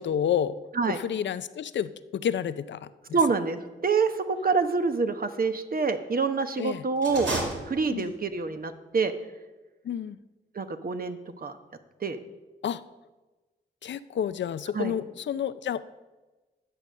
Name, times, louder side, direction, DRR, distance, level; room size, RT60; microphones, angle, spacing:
voice 1, 0.0-0.6 0.8-3.2 6.6-6.8 7.9-8.1 9.8-10.2 12.6-12.8 13.8-15.8, left 9 dB, 65° left, 15 dB, 0.5 m, -30 dB
voice 2, 3.1-7.3 7.6-9.1 10.5-11.5 12.0-12.2 14.7-14.9, right 4 dB, 45° right, 9 dB, 1.0 m, -26 dB
sound 1, 7.0-8.3, right 2 dB, 70° right, 2.2 m, -32 dB
10.0 x 6.6 x 6.4 m, 1.2 s
supercardioid pair, 40°, 20 cm